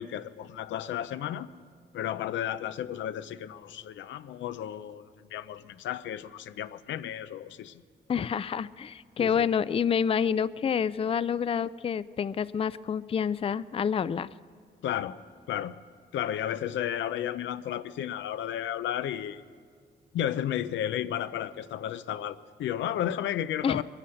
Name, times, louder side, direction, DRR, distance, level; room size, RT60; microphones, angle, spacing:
voice 1, 0.0-1.5 1.9-7.7 9.2-9.5 14.8-15.1 15.5-15.7 16.1-19.4 20.1-23.8, left 11 dB, 90° left, 0.5 m, -33 dB
voice 2, 8.1-14.3 23.6-23.8, left 7 dB, 30° left, 0.4 m, -28 dB
22.0 x 9.9 x 6.4 m
cardioid pair, 80°, 19 cm